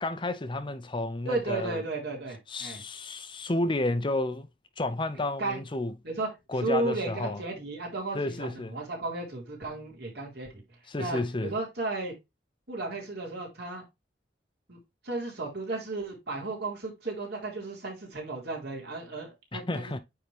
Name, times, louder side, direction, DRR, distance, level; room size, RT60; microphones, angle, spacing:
voice 1, 0.0-1.8 2.5-4.5 4.8-5.9 6.5-7.4 8.1-8.8 10.9-11.5 19.5-20.0, left 2 dB, 30° left, 0.7 m, -31 dB
voice 2, 1.3-2.8 5.4-5.6 6.0-6.3 6.6-10.6 11.0-12.1 12.7-13.8 14.7-14.8 15.0-19.8, right 2 dB, 65° right, 3.9 m, -34 dB
9.2 x 3.9 x 3.5 m
head